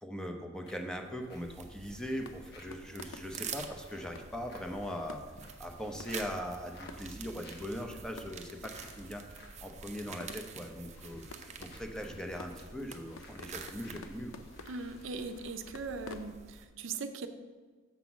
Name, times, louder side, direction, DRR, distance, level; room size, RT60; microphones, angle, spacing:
voice 1, 0.0-5.2 5.6-9.2 9.6-14.3, equal, 5° left, 3 dB, 0.8 m, -40 dB
sound 1, 0.6-16.3, left 1 dB, 55° left, 1.4 m, -57 dB
sound 2, 1.3-16.7, right 5 dB, 35° right, 0.7 m, -48 dB
sound 3, 2.1-16.3, left 3 dB, 85° left, 0.6 m, -53 dB
voice 2, 14.7-17.3, right 4 dB, 75° right, 8 dB, 0.6 m, -40 dB
7.1 x 5.8 x 5.9 m, 1.4 s
head